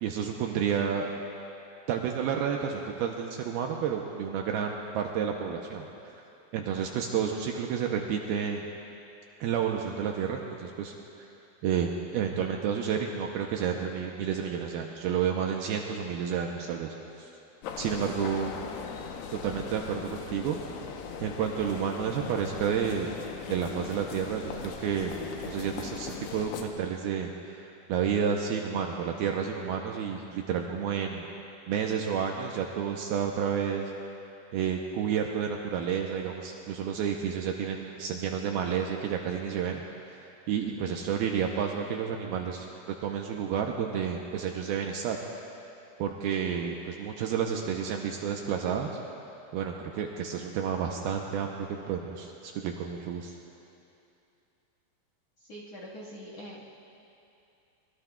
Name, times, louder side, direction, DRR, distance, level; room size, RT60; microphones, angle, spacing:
voice 1, 0.0-1.1 1.9-5.9 6.5-8.6 9.4-10.9 11.6-16.9 17.8-18.5 19.3-20.6 21.2-23.1 23.5-25.1 25.4-31.3 31.7-33.9 34.5-39.8 40.2-45.2 46.0-48.9 49.5-53.4, right 7 dB, 80° right, 1 dB, 2.3 m, -30 dB
sound 1, 17.6-26.7, left 6 dB, 75° left, 2.9 m, -39 dB
voice 2, 55.5-56.7, equal, 50° left, -5 dB, 2.1 m, -43 dB
25.0 x 23.0 x 2.3 m, 2.7 s
omnidirectional pair, 5.0 m